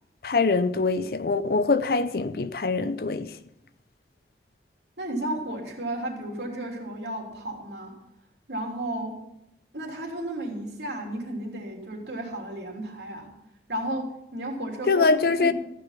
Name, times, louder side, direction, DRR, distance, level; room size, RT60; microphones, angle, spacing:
voice 1, 0.2-3.3 14.9-15.5, left 4 dB, 55° left, 0.6 m, -23 dB
voice 2, 5.0-7.9 8.5-9.1 9.7-13.3 13.7-14.0 14.3-15.1 15.4-15.5, right 1 dB, 75° right, 3.3 m, -33 dB
14.5 x 10.0 x 5.8 m
head